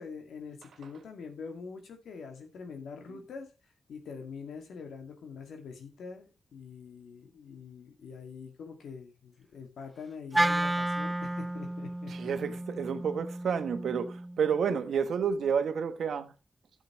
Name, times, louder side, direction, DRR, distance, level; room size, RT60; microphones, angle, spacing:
voice 1, 0.0-3.5 3.9-12.3, left 5 dB, 80° left, 2.1 m, -44 dB
Wind instrument woodwind instrument, 10.3-14.6, right 1 dB, 15° right, 0.4 m, -32 dB
voice 2, 12.1-16.3, right 6 dB, 80° right, 1.1 m, -30 dB
12.5 x 7.6 x 3.1 m
supercardioid pair, 40°, 0 cm